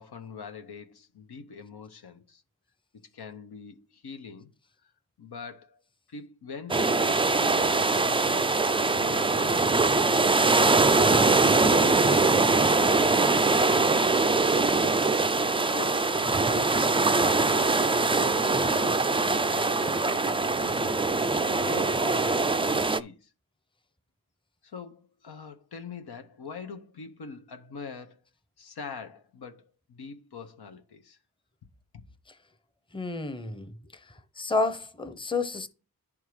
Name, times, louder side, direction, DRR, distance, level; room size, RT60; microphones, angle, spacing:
voice 1, 0.0-2.4 3.1-4.5 4.8-4.9 5.2-5.8 6.1-14.3 14.8-15.0 15.3-16.8 17.9-23.3 24.6-28.2 28.6-31.2 31.9-32.0, left 5 dB, 85° left, 0.9 m, -43 dB
sound 1, 6.7-23.0, right 3 dB, 15° right, 0.3 m, -23 dB
voice 2, 32.9-33.7 34.4-35.7, left 3 dB, 15° left, 0.7 m, -30 dB
10.5 x 3.7 x 4.7 m
wide cardioid pair, 80°, 38 cm